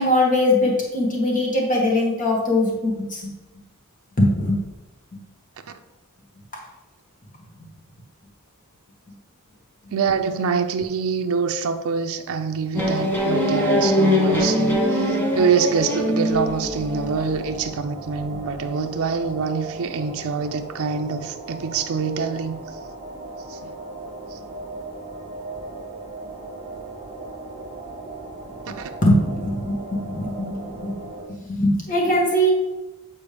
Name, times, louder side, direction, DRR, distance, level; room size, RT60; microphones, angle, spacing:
voice 1, 0.0-3.3 4.2-4.6 29.0-30.9 31.5-32.5, left 1 dB, 40° left, 1.7 m, -21 dB
voice 2, 9.9-22.6 23.5-23.7 28.8-28.9, right 5 dB, 70° right, 0.5 m, -25 dB
sound 1, 12.7-17.4, equal, 10° left, 1.1 m, -22 dB
sound 2, 16.3-31.3, right 2 dB, 25° right, 0.9 m, -37 dB
8.5 x 4.2 x 3.3 m
head